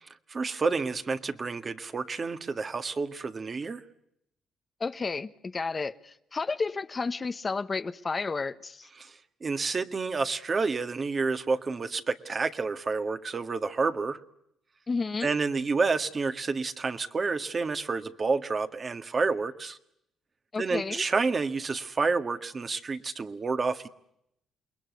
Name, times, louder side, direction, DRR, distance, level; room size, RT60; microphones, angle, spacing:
voice 1, 0.3-3.8 9.0-9.1 9.4-14.2 15.2-19.8 20.6-23.9, right 4 dB, 35° right, 1.8 m, -29 dB
voice 2, 4.8-8.9 14.9-15.3 20.5-21.0, left 4 dB, 30° left, 1.1 m, -32 dB
29.0 x 21.5 x 9.5 m
cardioid pair, 90°, 0 cm